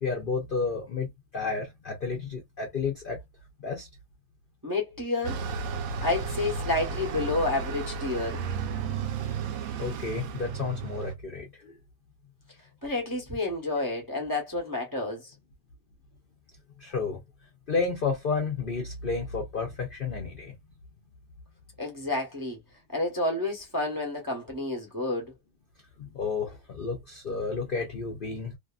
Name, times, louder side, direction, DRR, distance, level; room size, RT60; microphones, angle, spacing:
voice 1, 0.0-3.2 3.6-3.9 9.8-11.7 16.8-17.2 17.7-20.5 26.0-28.6, left 4 dB, 55° left, 0.6 m, -31 dB
voice 2, 4.6-5.4 6.0-8.4 12.8-15.3 21.8-22.6 22.9-25.3, left 2 dB, 20° right, 0.6 m, -30 dB
Bus, 5.2-11.1, right 5 dB, 70° right, 1.0 m, -33 dB
2.7 x 2.4 x 2.3 m
omnidirectional pair, 1.7 m